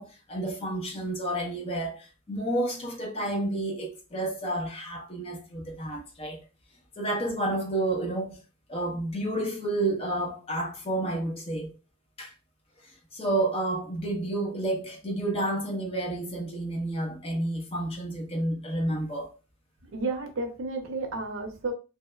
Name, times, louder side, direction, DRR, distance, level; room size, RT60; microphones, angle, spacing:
voice 1, 0.0-6.4 7.0-8.4 8.7-11.8 12.2-12.3 12.8-19.4, right 1 dB, 30° left, 0.5 m, -30 dB
voice 2, 19.9-21.7, right 3 dB, 70° right, 0.6 m, -32 dB
2.7 x 2.1 x 2.3 m
head